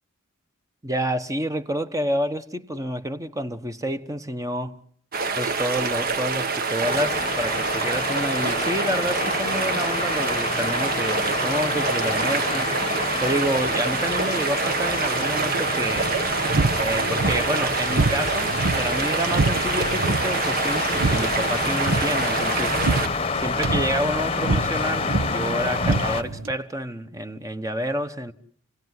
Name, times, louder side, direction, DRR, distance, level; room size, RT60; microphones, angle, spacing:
voice 1, 0.8-4.8 5.3-12.7 13.2-16.1 16.8-22.8 23.4-28.3, equal, 15° right, 1.1 m, -29 dB
sound 1, 5.1-23.3, right 4 dB, 45° right, 1.4 m, -26 dB
sound 2, 6.8-26.2, left 4 dB, 25° left, 1.0 m, -29 dB
sound 3, 16.0-26.5, right 3 dB, 70° right, 1.1 m, -27 dB
29.0 x 17.5 x 9.6 m
head